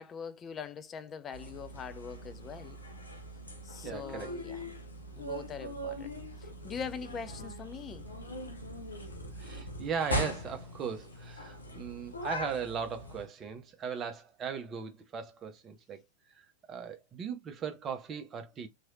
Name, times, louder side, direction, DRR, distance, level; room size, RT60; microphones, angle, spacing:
voice 1, 0.0-2.8 3.6-4.7 5.2-6.1 6.4-8.1, left 6 dB, 25° left, 0.5 m, -42 dB
sound 1, 1.3-13.3, equal, 75° left, 0.7 m, -41 dB
voice 2, 3.8-4.3 9.4-16.0 16.7-18.7, right 6 dB, 25° right, 0.8 m, -38 dB
3.1 x 2.9 x 2.4 m
figure-of-eight pair, 90°, 0 cm